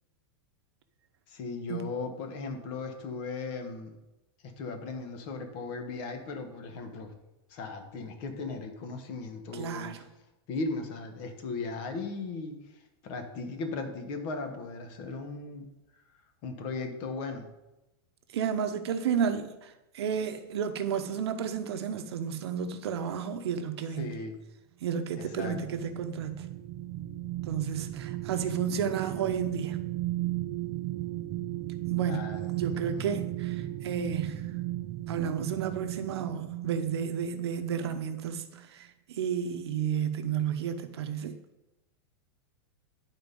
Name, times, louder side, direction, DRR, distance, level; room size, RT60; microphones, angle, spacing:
voice 1, 1.3-4.0 4.4-7.1 7.5-10.0 10.5-12.6 13.0-15.7 16.4-17.5 24.0-24.4 25.2-25.6 32.0-33.1, left 3 dB, 40° left, 1.3 m, -37 dB
voice 2, 9.5-10.0 18.3-19.5 19.9-24.1 24.8-26.3 27.5-29.8 31.9-32.2 32.6-33.6 33.8-34.5 35.1-38.4 39.2-41.4, right 7 dB, 80° right, 0.9 m, -31 dB
sound 1, 25.1-38.0 38.5-38.6, right 15 dB, 30° right, 0.5 m, -36 dB
10.5 x 4.2 x 5.3 m
supercardioid pair, 155°, 13 cm